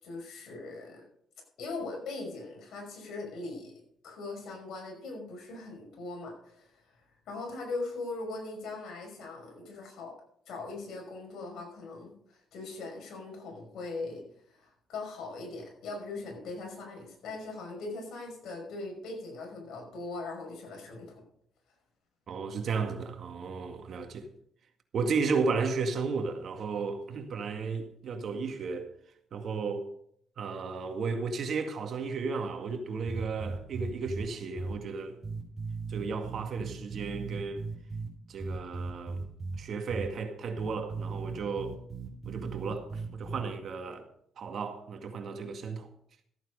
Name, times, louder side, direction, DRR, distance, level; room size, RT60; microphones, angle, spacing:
voice 1, 0.0-1.0 1.6-3.7 4.0-6.8 7.3-10.1 10.5-14.2 14.5-21.2, left 3 dB, 75° left, 5.7 m, -40 dB
voice 2, 22.3-24.3 24.9-28.9 29.3-29.9 30.4-35.2 35.9-37.6 38.3-39.2 39.6-41.8 42.3-44.1 44.4-45.9, right 4 dB, 60° right, 2.0 m, -34 dB
sound 1, 33.1-34.2 34.6-34.7 35.2-38.1 38.4-39.6 39.9-40.1 40.6-43.4, right 4 dB, 15° right, 3.8 m, -37 dB
14.5 x 9.1 x 5.3 m
cardioid pair, 90°, 0 cm